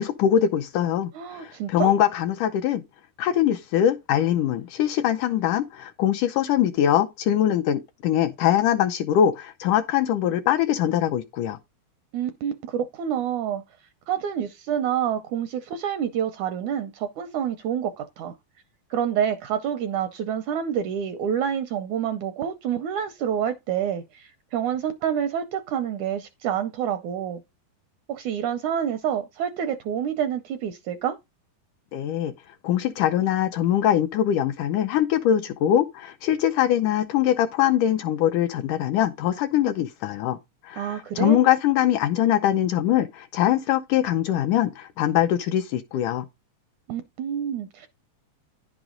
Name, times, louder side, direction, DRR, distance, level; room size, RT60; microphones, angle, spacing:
voice 1, 0.0-2.8 3.2-11.6 31.9-32.3 32.6-40.4 40.6-46.3, left 11 dB, 75° left, 1.9 m, -22 dB
voice 2, 1.2-1.9 12.1-13.6 14.1-18.3 18.9-27.4 28.1-31.2 40.8-41.4 46.9-47.9, right 9 dB, 80° right, 1.8 m, -28 dB
10.5 x 6.1 x 3.8 m
omnidirectional pair, 4.1 m